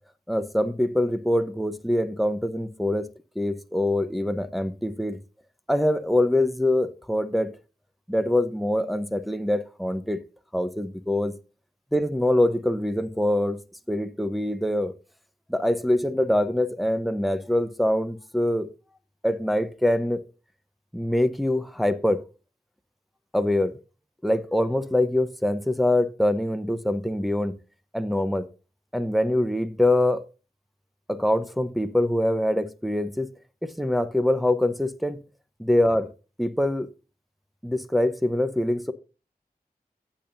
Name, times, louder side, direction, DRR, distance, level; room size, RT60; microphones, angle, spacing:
voice 1, 0.3-3.1 3.3-5.2 5.7-7.5 8.1-10.2 10.5-11.3 11.9-13.6 13.9-14.9 15.5-18.7 19.2-20.2 20.9-22.2 23.3-23.8 24.2-27.5 27.9-28.5 28.9-30.2 31.1-33.3 33.6-35.2 35.6-36.1 36.4-36.9 37.6-38.9, left 1 dB, ahead, 1.0 m, -24 dB
14.5 x 8.7 x 2.7 m
wide cardioid pair, 55°, 16 cm